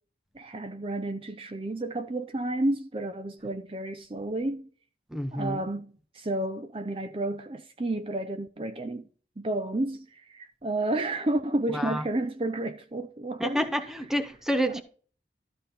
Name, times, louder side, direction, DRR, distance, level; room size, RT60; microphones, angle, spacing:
voice 1, 0.3-4.7 5.3-9.1 9.4-13.9 14.7-14.8, right 1 dB, 30° right, 0.6 m, -31 dB
voice 2, 5.1-5.6 11.7-12.0 13.4-14.8, equal, 5° right, 0.8 m, -28 dB
13.0 x 4.3 x 5.2 m
head